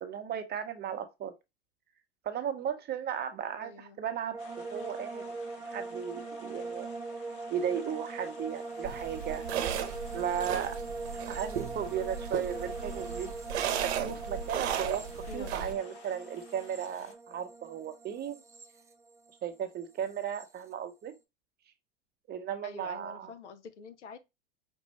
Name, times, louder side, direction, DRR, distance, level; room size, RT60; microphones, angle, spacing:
voice 1, 0.0-1.3 2.2-4.4 4.7-5.3 5.6-6.9 7.5-9.5 10.1-10.8 11.3-13.3 13.8-18.4 19.4-21.1 22.3-23.3, right 8 dB, 30° right, 0.8 m, -35 dB
voice 2, 3.6-4.0 14.0-14.2 15.3-15.7 22.6-24.2, left 4 dB, 80° left, 0.9 m, -47 dB
sound 1, 4.3-19.5 19.8-20.5, right 3 dB, 10° right, 0.4 m, -41 dB
sound 2, 4.4-17.1, left 6 dB, 40° left, 1.1 m, -55 dB
sound 3, 8.8-15.7, right 9 dB, 65° right, 0.9 m, -36 dB
5.3 x 2.5 x 3.1 m
hypercardioid pair, 100°, 35 cm